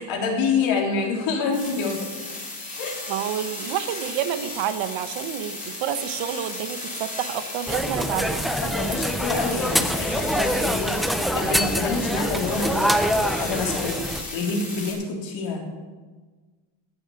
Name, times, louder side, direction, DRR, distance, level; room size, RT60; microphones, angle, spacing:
voice 1, 0.0-2.1 2.8-3.0 8.6-15.6, left 4 dB, 65° left, 0 dB, 3.7 m, -27 dB
sound 1, 1.5-14.9, left 2 dB, 15° left, 3.6 m, -35 dB
voice 2, 3.1-8.5, right 10 dB, 65° right, 11 dB, 1.3 m, -29 dB
sound 2, 7.7-14.2, equal, ahead, 0.3 m, -25 dB
17.5 x 7.2 x 8.3 m, 1.4 s
cardioid pair, 160°, 49 cm